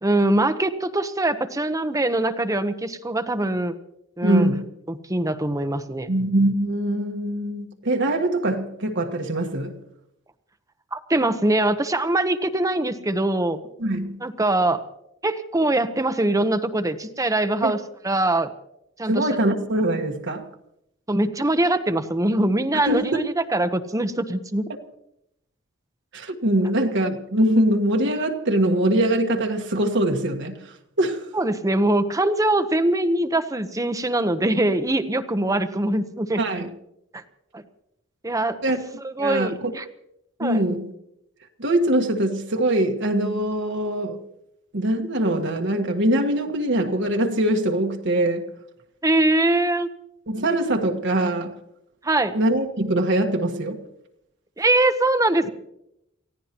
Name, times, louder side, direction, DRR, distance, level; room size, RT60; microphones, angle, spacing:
voice 1, 0.0-3.8 4.2-4.5 4.9-6.1 10.9-13.6 14.2-14.8 15.2-18.5 19.0-19.3 21.1-24.7 31.3-36.4 37.1-37.2 37.5-37.6 38.2-38.6 39.0-39.8 40.4-40.6 49.0-49.9 52.0-52.4 54.6-55.5, right 1 dB, 15° right, 1.0 m, -22 dB
voice 2, 4.2-4.6 6.1-9.8 13.8-14.2 17.6-17.7 19.1-20.5 22.8-23.2 26.1-31.2 36.4-36.7 38.6-38.8 39.2-39.7 40.4-40.9 41.6-44.2 44.7-48.5 50.3-51.6 52.3-53.8, right 1 dB, 60° right, 1.5 m, -23 dB
29.0 x 16.0 x 3.0 m
head